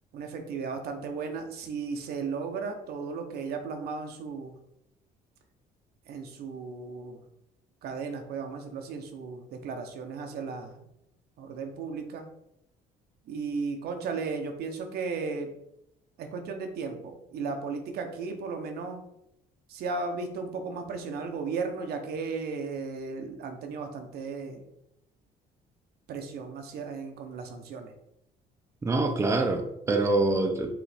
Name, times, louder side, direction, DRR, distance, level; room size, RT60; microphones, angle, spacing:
voice 1, 0.1-4.5 6.1-7.2 7.8-10.8 11.4-12.3 13.3-15.5 16.2-19.1 19.7-24.6 26.1-27.9, right 4 dB, 70° right, 5 dB, 0.8 m, -35 dB
voice 2, 28.8-30.7, right 2 dB, 15° right, 4 dB, 0.5 m, -25 dB
4.9 x 3.2 x 3.4 m, 0.81 s
cardioid pair, 110°, 17 cm